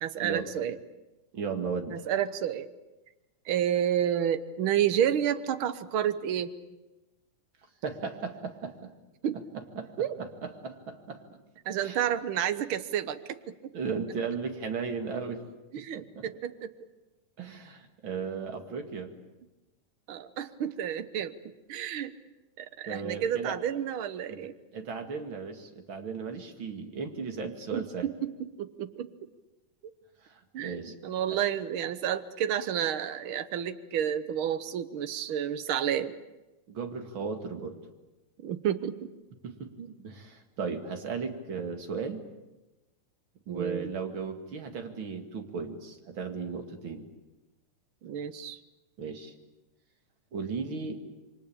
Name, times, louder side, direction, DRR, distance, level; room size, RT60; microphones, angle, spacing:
voice 1, 0.0-0.8 1.9-2.7 3.4-6.5 9.2-9.4 10.0-10.1 11.6-13.7 15.7-16.7 20.1-21.3 21.7-22.1 22.6-24.5 27.7-29.1 30.5-36.1 38.4-39.1 39.8-39.9 40.7-40.8 43.5-43.9 48.0-48.6, right 10 dB, 65° right, 12 dB, 1.4 m, -30 dB
voice 2, 1.3-2.0 7.8-8.9 9.5-9.9 10.2-11.3 11.8-12.0 13.7-15.4 15.8-16.2 17.4-19.1 22.9-23.5 24.3-24.4 24.7-28.1 30.2-30.9 31.3-31.4 36.7-37.8 39.4-39.7 40.0-42.2 43.5-47.1 49.0-49.3 50.3-51.0, right 5 dB, 40° right, 6 dB, 2.7 m, -36 dB
28.0 x 24.0 x 8.8 m, 1.0 s
omnidirectional pair, 3.6 m